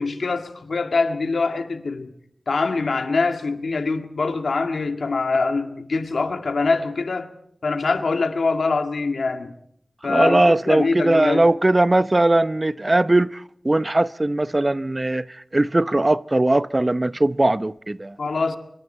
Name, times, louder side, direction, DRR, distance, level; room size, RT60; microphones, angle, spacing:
voice 1, 0.0-2.1 2.5-7.3 7.6-9.5 10.0-11.5 18.2-18.6, left 4 dB, 90° left, 1.9 m, -24 dB
voice 2, 10.1-15.3 15.5-18.2, right 2 dB, 35° right, 0.7 m, -19 dB
26.5 x 24.0 x 4.5 m
cardioid pair, 45°, 0 cm